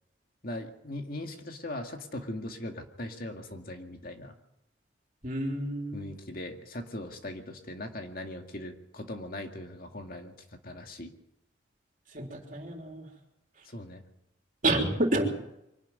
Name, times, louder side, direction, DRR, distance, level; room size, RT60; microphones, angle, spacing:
voice 1, 0.4-4.3 5.9-11.1 13.6-14.0, left 1 dB, 50° left, 4 dB, 2.2 m, -40 dB
voice 2, 5.2-6.1 12.1-13.1 14.6-15.3, right 1 dB, 45° right, 2 dB, 3.6 m, -29 dB
24.5 x 12.0 x 9.5 m, 0.84 s
head